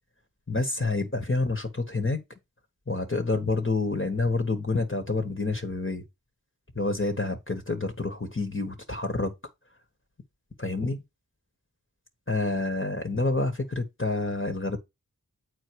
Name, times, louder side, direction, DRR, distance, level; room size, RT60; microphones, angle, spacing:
voice 1, 0.5-2.2 2.9-6.0 6.7-9.3 10.6-11.0 12.3-14.8, left 3 dB, 35° left, 1.5 m, -28 dB
8.0 x 4.3 x 4.7 m
wide cardioid pair, 45°, 36 cm